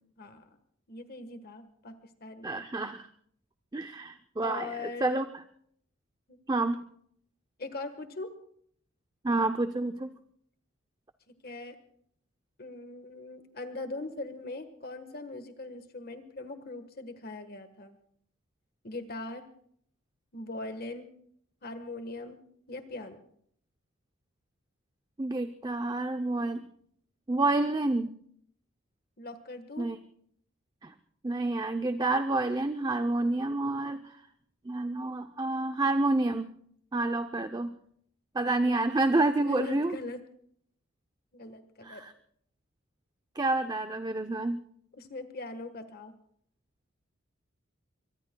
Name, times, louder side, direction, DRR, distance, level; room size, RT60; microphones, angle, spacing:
voice 1, 0.2-0.5 0.9-1.9 2.2-2.6 4.4-5.2 6.3-6.4 7.6-8.3 11.4-11.8 12.6-17.9 18.8-19.4 20.3-21.1 21.6-22.4 22.7-23.3 29.2-29.9 38.4-38.5 39.4-40.2 41.3-42.0 44.9-46.1, left 2 dB, 45° left, 9 dB, 1.4 m, -40 dB
voice 2, 2.4-3.1 3.7-5.4 6.5-6.8 9.2-10.1 25.2-26.6 27.3-28.1 29.8-30.0 30.8-30.9 31.2-34.2 34.6-36.5 36.9-37.8 38.3-40.0 41.8-42.1 43.4-44.6, right 2 dB, 20° right, 8 dB, 0.6 m, -29 dB
24.0 x 22.5 x 2.3 m, 0.64 s
head